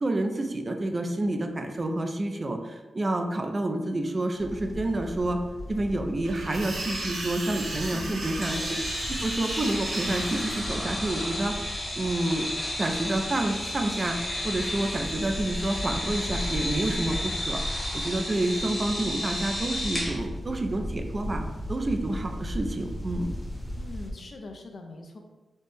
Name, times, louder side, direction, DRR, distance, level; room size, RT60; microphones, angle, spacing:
voice 1, 0.0-5.4 5.7-8.8 9.2-11.6 12.0-12.5 12.8-14.2 14.4-17.6 17.9-21.4 21.7-23.3, right 1 dB, 30° right, 4 dB, 0.3 m, -29 dB
sound 1, 4.4-24.1, equal, 10° left, 0.6 m, -38 dB
sound 2, 6.2-10.6, right 2 dB, 80° right, 0.7 m, -35 dB
voice 2, 7.9-8.9 23.8-25.2, left 2 dB, 55° left, 4 dB, 0.4 m, -42 dB
sound 3, 8.4-20.1, left 1 dB, 30° left, 1.1 m, -33 dB
4.2 x 2.1 x 3.2 m, 1.1 s
wide cardioid pair, 110°, 0 cm